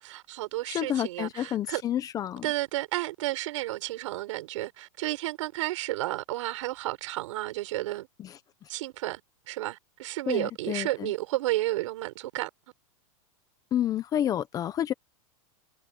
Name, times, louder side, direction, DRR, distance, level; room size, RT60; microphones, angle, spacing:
voice 1, 0.0-1.8 2.4-8.1 8.7-9.2 9.5-12.5, right 17 dB, 60° right, 6.0 m, -32 dB
voice 2, 0.7-2.5 8.2-8.4 10.3-11.1 13.7-14.9, left 11 dB, 20° left, 0.8 m, -29 dB
supercardioid pair, 155°, 18 cm